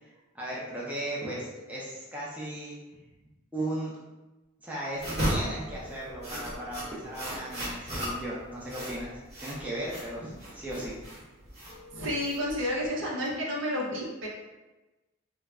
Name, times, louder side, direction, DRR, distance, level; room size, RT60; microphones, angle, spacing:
voice 1, 0.3-2.8 3.5-3.9 4.6-9.1 9.4-10.9, right 1 dB, 10° right, -7 dB, 0.5 m, -36 dB
sound 1, 0.5-1.7 5.7-7.7 11.7-12.6, left 2 dB, 75° left, 0.4 m, -51 dB
sound 2, 5.0-12.9, equal, 35° right, 1.0 m, -35 dB
voice 2, 11.9-14.3, equal, 65° right, -3 dB, 0.6 m, -30 dB
2.2 x 2.0 x 3.4 m, 1.1 s
head